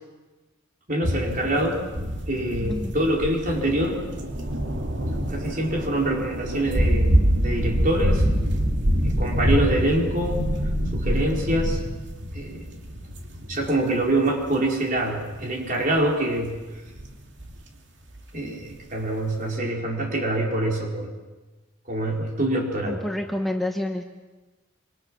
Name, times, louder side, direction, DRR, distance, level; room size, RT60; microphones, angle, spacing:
voice 1, 0.9-1.9 2.3-4.0 5.3-8.3 9.0-10.5 10.9-11.8 12.3-12.7 13.5-16.6 18.3-21.1 21.9-23.0, right 1 dB, 45° right, 0 dB, 4.3 m, -25 dB
sound 1, 1.0-14.7 15.0-16.0 16.4-17.1 17.4-17.6 18.2-18.3, equal, 60° right, 2.9 m, -26 dB
voice 2, 22.8-24.0, left 1 dB, ahead, 2 dB, 1.2 m, -28 dB
26.0 x 25.5 x 6.2 m, 1.2 s
head